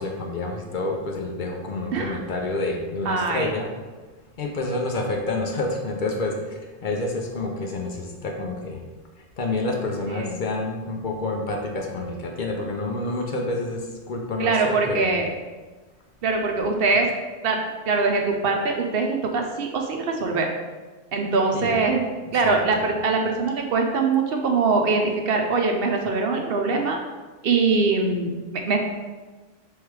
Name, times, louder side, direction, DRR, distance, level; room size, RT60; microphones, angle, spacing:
voice 1, 0.0-3.7 4.4-8.8 9.4-15.2 21.5-21.8 22.3-22.6, left 2 dB, 55° left, 1 dB, 0.7 m, -28 dB
voice 2, 3.1-3.5 10.1-10.3 14.4-15.3 16.2-17.1 17.4-17.6 17.9-20.5 21.1-22.0 22.3-27.0 27.4-28.8, right 4 dB, 65° right, 3 dB, 0.7 m, -22 dB
3.5 x 3.3 x 4.6 m, 1.3 s
omnidirectional pair, 1.2 m